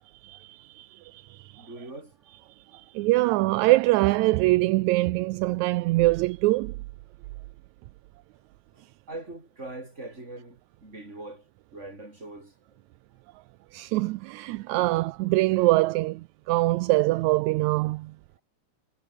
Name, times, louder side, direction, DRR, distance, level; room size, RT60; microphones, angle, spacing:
voice 1, 0.2-1.6 2.7-6.7 13.7-18.1, right 20 dB, 80° right, 1.9 m, -24 dB
voice 2, 1.6-2.1 2.7-2.8 9.1-11.4 11.7-12.5, right 2 dB, 20° right, 6.7 m, -41 dB
omnidirectional pair, 3.3 m